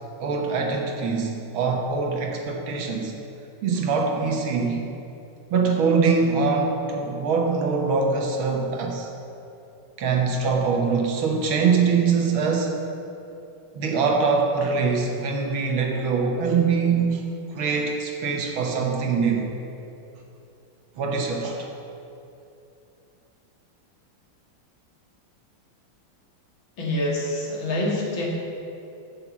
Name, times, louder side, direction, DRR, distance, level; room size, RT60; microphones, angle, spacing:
voice 1, 0.2-3.1 3.6-4.9 5.5-9.1 10.0-12.7 13.7-17.2 17.5-19.5 21.0-21.7, right 5 dB, 75° right, 2 dB, 1.9 m, -23 dB
voice 2, 26.8-28.3, left 1 dB, 65° left, -3 dB, 2.5 m, -26 dB
8.0 x 7.5 x 7.2 m, 2.8 s
omnidirectional pair, 2.3 m